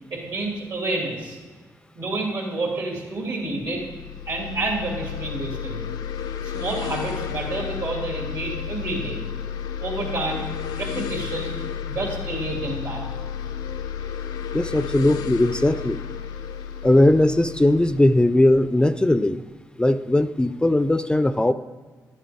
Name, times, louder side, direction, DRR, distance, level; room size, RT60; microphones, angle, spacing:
voice 1, 0.1-1.4 1.9-3.9 4.3-5.8 6.4-9.3 9.8-10.5 10.7-13.0, right 2 dB, 65° right, -1 dB, 2.6 m, -29 dB
sound 1, 3.7-19.1, left 8 dB, 85° left, 0.5 m, -32 dB
voice 2, 14.5-16.0 16.8-19.4 19.8-21.5, left 1 dB, 10° left, 12 dB, 0.4 m, -19 dB
11.0 x 7.4 x 3.6 m, 1.4 s
supercardioid pair, 55°, 7 cm